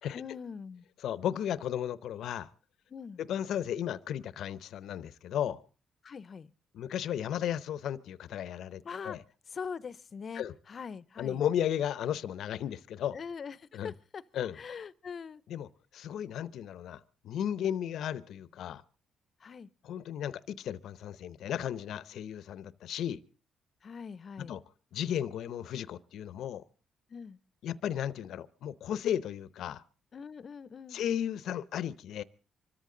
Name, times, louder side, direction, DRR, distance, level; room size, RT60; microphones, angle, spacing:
voice 1, 0.1-0.9 2.9-3.2 6.0-6.5 8.8-9.2 9.5-11.4 13.1-14.2 14.5-15.4 19.4-19.7 23.8-24.5 27.1-27.4 30.1-31.0, left 6 dB, 45° left, 0.7 m, -42 dB
voice 2, 1.0-2.5 3.2-5.6 6.7-9.2 10.3-10.5 11.2-13.2 13.7-13.9 14.3-14.6 15.5-18.8 19.8-23.2 24.4-24.6 24.9-26.6 27.6-29.8 30.9-32.2, left 10 dB, 75° left, 0.8 m, -34 dB
25.0 x 14.0 x 3.9 m
cardioid pair, 90°, 0 cm